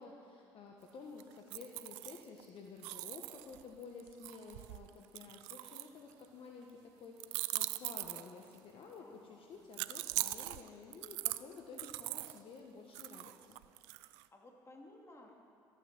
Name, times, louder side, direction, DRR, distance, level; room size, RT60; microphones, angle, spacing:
voice 1, 0.0-13.6, left 4 dB, 55° left, 1 dB, 1.4 m, -52 dB
sound 1, 1.2-2.5 2.8-6.3 7.2-8.6 9.7-12.4 12.9-14.2, right 20 dB, 80° right, 0.4 m, -41 dB
voice 2, 9.0-9.9 14.0-15.4, left 1 dB, 25° left, 0 dB, 2.7 m, -59 dB
14.0 x 9.1 x 7.5 m, 2.4 s
hypercardioid pair, 70°, 11 cm